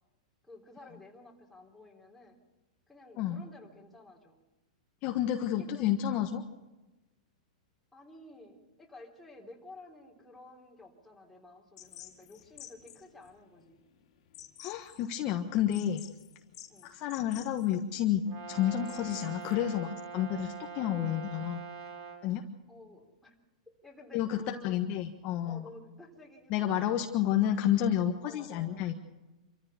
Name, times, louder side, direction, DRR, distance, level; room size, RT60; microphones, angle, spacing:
voice 1, 0.4-2.4 2.9-4.4 5.5-5.9 7.9-13.8 16.7-16.9 22.7-23.4 23.8-24.8 25.5-27.0 28.2-28.9, left 2 dB, 5° left, -1 dB, 3.5 m, -52 dB
voice 2, 5.0-6.4 14.6-16.1 16.8-21.6 22.2-22.4 24.1-25.7 26.5-28.9, left 11 dB, 35° left, 3 dB, 1.3 m, -30 dB
sound 1, 11.8-19.6, left 12 dB, 60° left, 2.5 m, -52 dB
Brass instrument, 18.3-22.3, right 5 dB, 40° right, 3.8 m, -43 dB
26.5 x 14.0 x 7.0 m, 1.1 s
hypercardioid pair, 140°, 4 cm